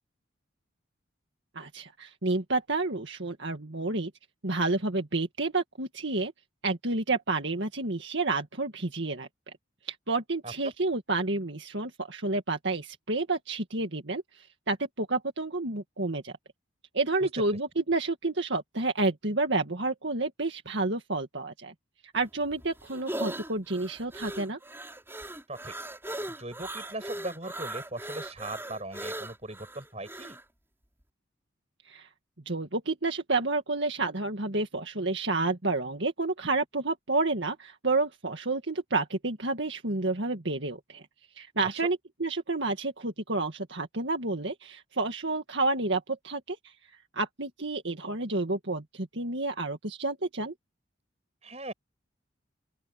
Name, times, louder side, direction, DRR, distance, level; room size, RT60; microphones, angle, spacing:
voice 1, 1.6-4.1 4.4-6.3 6.6-9.3 9.8-16.3 16.9-21.7 22.1-24.6 31.9-32.1 32.5-41.0 41.3-46.7 47.1-50.5, right 3 dB, 65° right, 1.9 m, -30 dB
sound 1, 22.2-30.4, right 1 dB, 10° right, 6.1 m, -39 dB
voice 2, 26.4-30.4 41.6-41.9 51.4-51.7, right 2 dB, 30° right, 7.9 m, -39 dB
open air
head